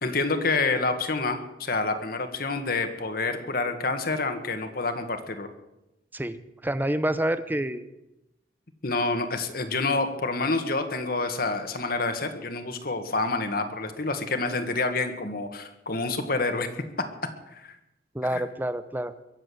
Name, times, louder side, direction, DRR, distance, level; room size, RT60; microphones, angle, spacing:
voice 1, 0.0-5.5 8.8-16.7 17.5-17.7 18.3-18.4, left 3 dB, 60° left, 7 dB, 1.8 m, -28 dB
voice 2, 6.1-7.8 18.1-19.1, right 1 dB, 10° right, 13 dB, 0.8 m, -28 dB
22.5 x 7.8 x 7.9 m, 0.92 s
head